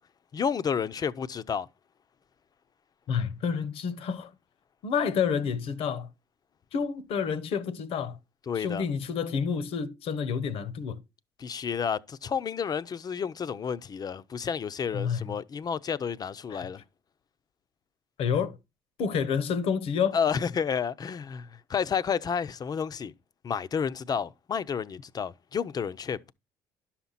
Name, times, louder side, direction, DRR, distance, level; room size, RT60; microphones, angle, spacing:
voice 1, 0.3-1.7 8.5-8.8 11.4-16.8 20.1-23.1 23.4-26.3, left 7 dB, 40° left, 0.6 m, -31 dB
voice 2, 3.1-4.3 4.8-6.1 6.7-8.2 8.6-11.0 14.9-15.3 16.5-16.7 18.2-18.6 19.0-20.2, left 6 dB, 65° left, 1.0 m, -29 dB
11.0 x 5.9 x 4.1 m
supercardioid pair, 70°, 10 cm